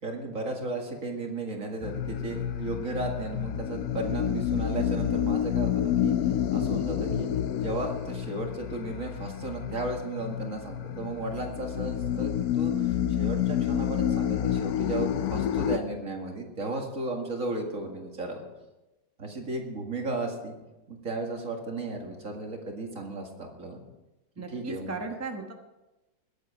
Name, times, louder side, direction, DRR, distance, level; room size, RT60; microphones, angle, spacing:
voice 1, 0.0-6.2 6.5-7.3 7.5-18.4 19.2-20.5 20.9-23.8 24.5-24.9, right 2 dB, 45° right, 2 dB, 2.4 m, -35 dB
sound 1, 1.8-15.8, left 10 dB, 70° left, 0.9 m, -29 dB
voice 2, 24.4-25.5, right 4 dB, 15° right, 3 dB, 0.7 m, -36 dB
21.0 x 8.2 x 5.0 m, 1.0 s
omnidirectional pair, 2.0 m